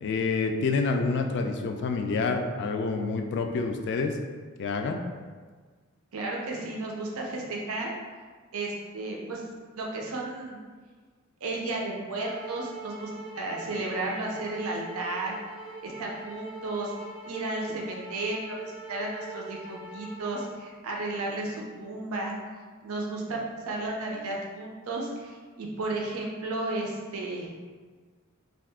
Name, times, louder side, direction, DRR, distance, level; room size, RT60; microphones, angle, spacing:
voice 1, 0.0-4.2 4.6-5.0, left 4 dB, 55° left, 4 dB, 0.3 m, -28 dB
voice 2, 6.1-7.9 8.5-9.4 9.8-10.6 11.4-13.1 13.4-15.4 15.8-16.9 17.2-22.3 22.8-23.4 23.7-27.5, right 2 dB, 70° right, -1 dB, 0.5 m, -33 dB
sound 1, 12.1-20.5, right 2 dB, 5° right, 0.7 m, -43 dB
2.7 x 2.4 x 3.5 m, 1.5 s
head